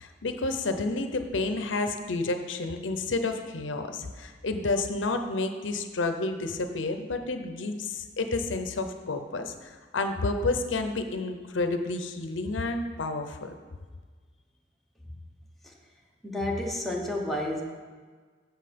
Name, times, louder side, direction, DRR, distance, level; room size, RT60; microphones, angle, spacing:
voice 1, 0.0-13.5, left 3 dB, 85° left, 7 dB, 0.7 m, -30 dB
voice 2, 16.2-17.6, left 1 dB, ahead, -2 dB, 1.0 m, -30 dB
7.7 x 7.0 x 5.2 m, 1.5 s
head